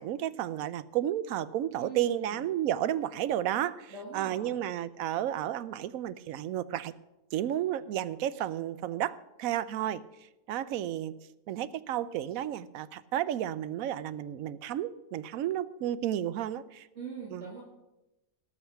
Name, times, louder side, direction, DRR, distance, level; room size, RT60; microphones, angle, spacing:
voice 1, 0.0-6.9 7.3-10.0 10.5-11.1 11.5-16.9 17.3-17.4, right 11 dB, 70° right, 16 dB, 1.0 m, -32 dB
voice 2, 1.8-2.4 3.9-4.6 16.9-17.6, right 4 dB, 45° right, -4 dB, 2.5 m, -42 dB
18.5 x 6.6 x 5.7 m, 0.96 s
omnidirectional pair, 1.6 m